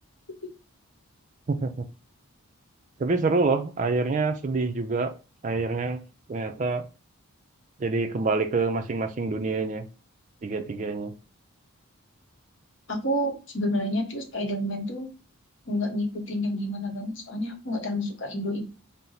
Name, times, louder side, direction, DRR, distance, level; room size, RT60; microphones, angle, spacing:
voice 1, 3.0-5.1 5.4-6.0 6.3-6.9 7.8-9.9 10.4-11.2, right 3 dB, 35° right, 0.3 m, -26 dB
voice 2, 12.9-15.1 15.7-18.6, left 1 dB, 55° left, 0.9 m, -29 dB
4.2 x 2.0 x 3.8 m
head